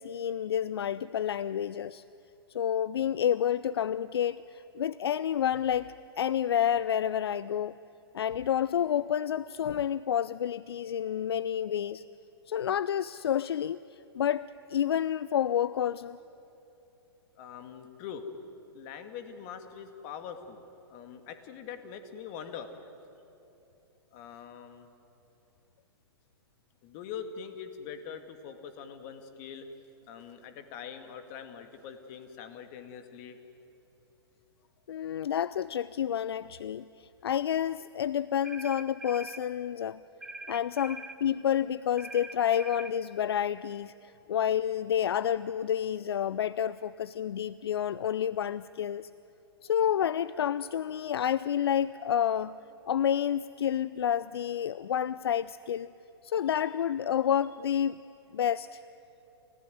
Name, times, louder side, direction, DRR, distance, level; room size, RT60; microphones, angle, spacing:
voice 1, 0.0-2.0 2.5-7.7 8.1-12.0 12.5-16.2 34.9-40.0 40.5-49.1 49.6-52.6 52.9-55.9 56.2-58.0 58.3-58.8, left 9 dB, 70° left, 18 dB, 0.4 m, -29 dB
voice 2, 17.4-18.3 18.7-20.6 20.9-22.9 24.1-24.9 26.8-29.7 30.1-33.4, left 7 dB, 40° left, 8 dB, 2.2 m, -43 dB
sound 1, 38.4-39.4 40.2-41.2 42.0-43.0, right 2 dB, 5° right, 1.1 m, -43 dB
29.0 x 15.5 x 9.4 m, 2.9 s
hypercardioid pair, 115°, 13 cm